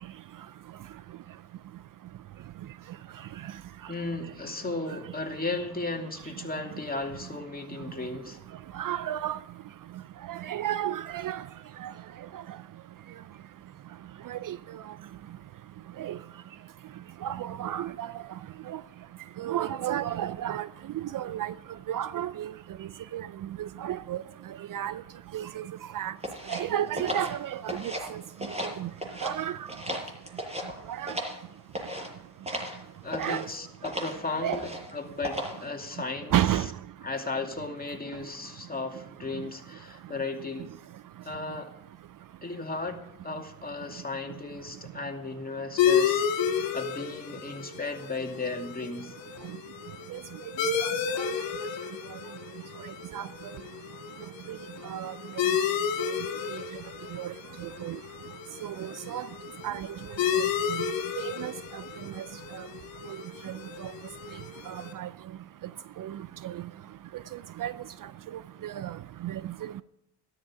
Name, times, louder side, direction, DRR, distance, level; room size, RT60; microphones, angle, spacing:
voice 1, 3.9-8.4 33.0-36.3 37.0-40.7 41.2-41.7 42.4-49.1, left 3 dB, 20° left, 2.5 m, -35 dB
voice 2, 8.7-9.4 10.3-11.4 11.8-11.9 14.3-14.6 16.0-16.2 17.2-18.1 18.7-18.8 19.4-20.7 21.1-21.5 21.9-22.5 23.1-23.3 23.6-24.2 24.7-24.9 25.3-25.6 25.9-26.1 26.5-27.9 28.8-28.9 29.2-29.6 30.9-31.1 33.2-33.4 34.4-34.6 36.3-36.7 50.1-50.2 50.8-50.9 53.1-53.3 54.9-55.1 57.2-57.3 57.8-58.0 58.6-59.3 59.6-59.9 61.3-61.5 62.2-62.3 65.0-65.1 66.0-66.1 66.4-66.5 67.6-67.7 68.6-68.9 69.2-69.7, right 11 dB, 50° right, 0.5 m, -31 dB
sound 1, 26.2-28.1 28.4-29.3 29.7-31.4 31.7-32.1 32.4-32.8 33.1-33.4 33.8-34.2 34.5-34.9 35.2-35.6, equal, 15° right, 6.7 m, -35 dB
sound 2, 45.8-64.9, left 8 dB, 85° left, 2.1 m, -32 dB
13.0 x 13.0 x 4.9 m
supercardioid pair, 55°, 42 cm